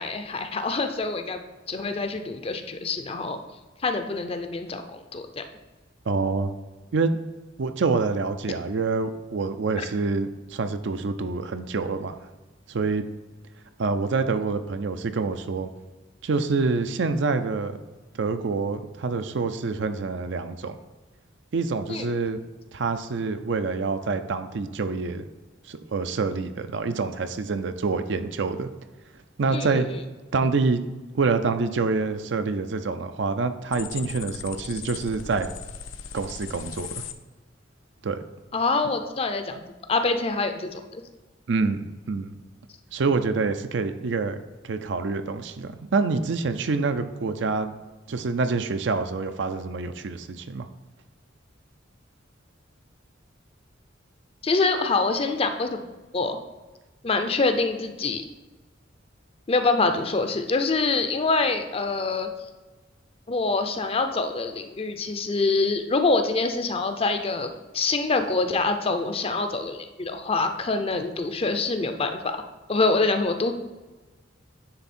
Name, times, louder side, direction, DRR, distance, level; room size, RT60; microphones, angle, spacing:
voice 1, 0.0-1.4 1.7-3.4 3.8-5.4 21.9-22.1 29.5-30.0 38.5-39.6 39.9-41.0 54.4-55.8 56.1-56.4 57.0-58.2 59.5-62.3 63.3-72.4 72.7-73.5, left 3 dB, 30° left, 7 dB, 0.5 m, -25 dB
voice 2, 6.1-6.5 6.9-7.2 7.6-12.2 12.7-13.0 13.8-15.7 16.2-17.8 18.1-20.8 21.5-22.4 22.7-25.3 25.7-28.7 29.4-29.9 30.3-30.8 31.1-35.5 36.1-36.9 38.0-38.2 41.5-42.3 42.9-44.4 44.6-47.7 48.1-50.7, right 4 dB, 65° right, 9 dB, 0.5 m, -26 dB
sound 1, 33.7-37.1, left 7 dB, 80° left, 0.5 m, -38 dB
9.6 x 3.5 x 4.3 m, 1.2 s
head